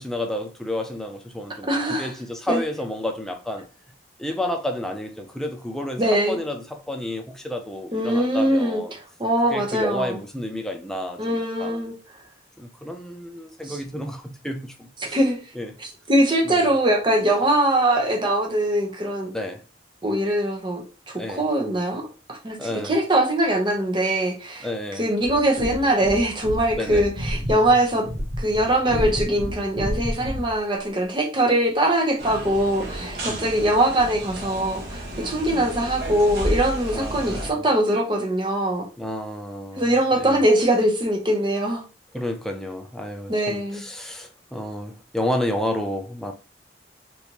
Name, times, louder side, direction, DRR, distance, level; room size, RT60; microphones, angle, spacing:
voice 1, 0.0-3.7 4.2-8.9 9.5-11.8 12.6-15.2 15.5-15.7 16.4-16.8 19.3-19.6 21.2-21.4 22.6-23.0 24.6-25.1 26.7-27.1 33.2-33.5 36.9-37.6 39.0-40.4 42.1-46.3, left 1 dB, 5° left, 0.3 m, -31 dB
voice 2, 1.7-2.1 2.5-2.6 6.0-6.4 7.9-10.2 11.2-11.9 13.7-13.8 15.1-15.4 15.8-19.3 20.0-22.0 22.3-24.7 25.0-28.1 28.4-38.9 39.8-41.8 43.3-43.8, right 1 dB, 25° right, 0.8 m, -22 dB
sound 1, 25.2-30.6, equal, 85° right, 1.3 m, -30 dB
sound 2, 32.2-37.5, right 1 dB, 60° right, 1.0 m, -32 dB
3.3 x 2.7 x 2.9 m
head